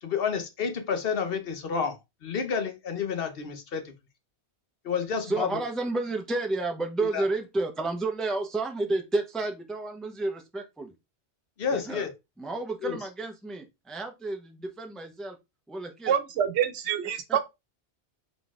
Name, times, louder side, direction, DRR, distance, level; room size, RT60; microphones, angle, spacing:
voice 1, 0.0-2.0 2.2-3.9 4.8-5.5 7.1-7.2 11.6-12.1 12.8-13.0, left 6 dB, 60° left, 1.0 m, -30 dB
voice 2, 5.2-10.9 11.7-12.1 12.4-15.4 15.7-16.1 17.3-17.4, right 2 dB, ahead, 0.4 m, -31 dB
voice 3, 16.1-17.4, right 9 dB, 80° right, 1.0 m, -26 dB
4.0 x 3.8 x 2.3 m
omnidirectional pair, 1.2 m